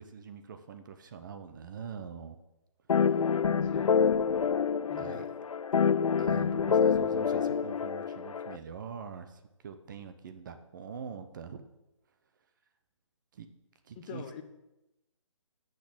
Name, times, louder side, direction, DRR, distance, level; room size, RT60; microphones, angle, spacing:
voice 1, 0.0-2.4 3.1-3.2 4.9-5.3 6.2-11.6 13.3-13.5 13.8-14.2, right 6 dB, 35° right, 8 dB, 0.8 m, -44 dB
sound 1, 2.9-8.6, left 6 dB, 85° left, 0.5 m, -27 dB
voice 2, 3.6-3.9 4.9-5.2 14.0-14.4, left 7 dB, 20° left, 7 dB, 0.6 m, -43 dB
8.3 x 6.6 x 7.1 m, 0.92 s
hypercardioid pair, 160°, 17 cm